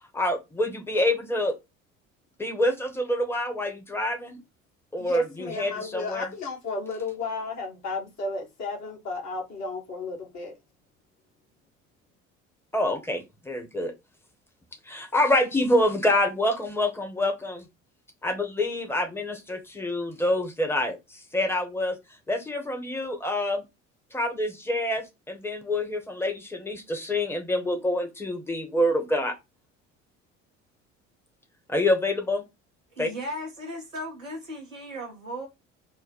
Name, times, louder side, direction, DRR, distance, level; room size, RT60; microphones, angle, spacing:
voice 1, 0.1-1.6 2.4-4.4 4.9-6.3 12.7-13.9 14.9-17.7 18.2-22.0 22.3-23.6 24.1-29.3 31.7-32.4 33.0-33.1, left 1 dB, 5° left, 1.0 m, -26 dB
voice 2, 5.0-10.6, left 3 dB, 45° left, 1.5 m, -34 dB
voice 3, 32.9-35.5, equal, 85° right, 0.8 m, -36 dB
3.2 x 2.1 x 4.2 m
figure-of-eight pair, 55°, 39 cm